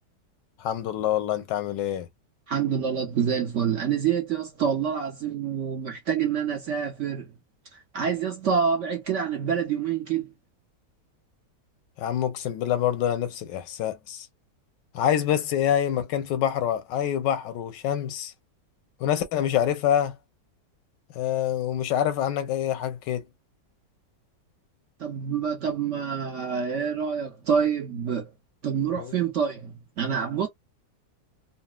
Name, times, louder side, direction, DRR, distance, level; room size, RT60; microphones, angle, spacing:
voice 1, 0.6-2.1 12.0-14.3 14.9-18.3 19.0-20.2 21.1-23.2 28.9-29.1, left 10 dB, 85° left, 1.3 m, -26 dB
voice 2, 2.5-7.3 7.7-10.3 25.0-28.3 28.6-30.5, right 7 dB, 60° right, 0.8 m, -27 dB
3.9 x 2.0 x 2.2 m
omnidirectional pair, 1.9 m